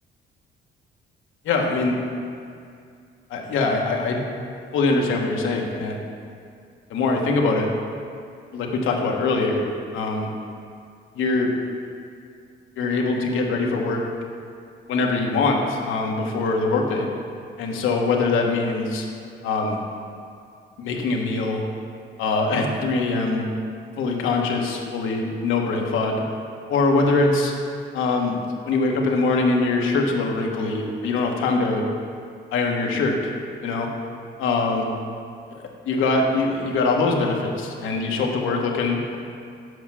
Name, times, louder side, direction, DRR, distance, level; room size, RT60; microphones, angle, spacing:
voice 1, 1.4-2.0 3.3-4.2 4.7-6.0 6.9-7.7 8.5-9.7 9.9-10.3 11.2-11.5 12.8-14.0 14.9-17.1 17.6-19.1 19.4-19.8 20.8-21.6 22.2-23.4 24.0-26.2 26.7-27.5 27.9-28.4 28.7-31.8 32.5-33.3 33.6-33.9 34.4-34.8 35.5-39.2, left 3 dB, 85° left, 1 dB, 1.2 m, -23 dB
8.0 x 5.5 x 6.1 m, 2.3 s
cardioid pair, 90°, 20 cm